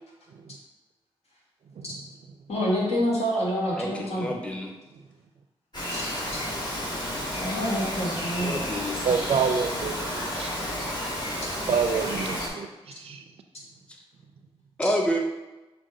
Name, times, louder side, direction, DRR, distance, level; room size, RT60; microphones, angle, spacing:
voice 1, 2.5-4.3 5.9-6.4 7.3-8.6 9.1-9.2, equal, 85° left, -4 dB, 1.4 m, -27 dB
voice 2, 3.8-4.7 8.4-9.0 14.8-15.2, equal, 10° left, 1 dB, 0.6 m, -28 dB
Bird vocalization bird call bird song, 5.7-12.5, equal, 45° left, 1.4 m, -31 dB
voice 3, 9.0-10.6 11.7-12.7 13.0-13.2, right 6 dB, 75° right, 7 dB, 0.4 m, -27 dB
6.3 x 2.3 x 3.7 m, 1.1 s
wide cardioid pair, 95°, 10 cm